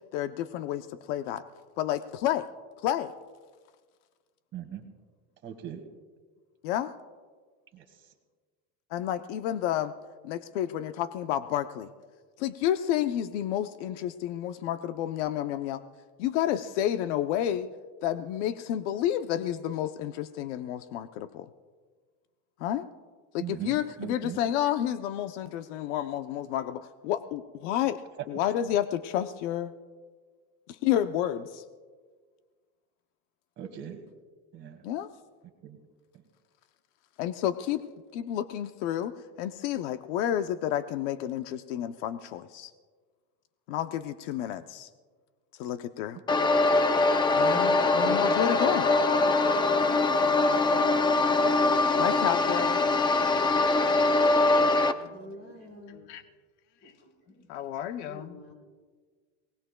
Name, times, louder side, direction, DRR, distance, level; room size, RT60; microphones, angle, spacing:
voice 1, 0.1-1.4 1.8-2.5 2.8-3.1 6.6-6.9 8.9-9.9 10.2-11.9 12.4-15.8 16.2-17.7 18.0-21.5 22.6-22.9 23.3-28.0 28.3-29.7 30.7-31.6 34.8-35.1 37.2-37.8 38.1-42.7 43.7-44.9 45.6-46.2 47.3-48.9 52.0-52.8 55.9-56.2 57.5-58.4, left 11 dB, 75° left, 9 dB, 0.7 m, -30 dB
voice 2, 4.5-4.8 5.4-5.8 7.7-7.8 23.4-24.4 33.6-34.0 34.5-34.8 35.6-35.8 47.5-48.4 51.0-51.5, right 10 dB, 35° right, 5 dB, 1.7 m, -41 dB
sound 1, 46.3-54.9, left 3 dB, 15° left, 0.4 m, -23 dB
voice 3, 54.7-56.0 56.8-57.4 58.0-58.5, left 1 dB, 30° left, 2 dB, 4.5 m, -48 dB
28.5 x 19.5 x 2.2 m, 1.5 s
supercardioid pair, 150°, 36 cm